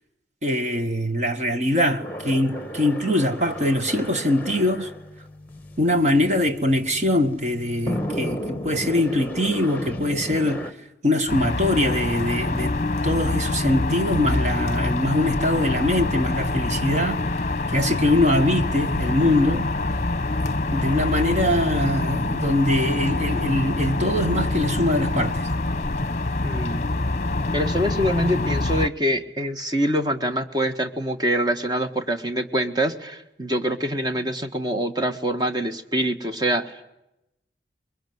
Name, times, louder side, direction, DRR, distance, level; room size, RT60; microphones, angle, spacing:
voice 1, 0.4-4.9 5.8-10.6 11.0-12.8 13.0-19.7 20.7-25.5, left 1 dB, 40° right, 1.7 m, -23 dB
sound 1, 2.0-10.7, left 1 dB, 10° left, 1.6 m, -34 dB
sound 2, 11.3-28.9, left 2 dB, 40° left, 0.9 m, -25 dB
voice 2, 26.4-26.8 27.5-36.8, equal, 25° right, 1.7 m, -25 dB
24.0 x 22.5 x 9.5 m
head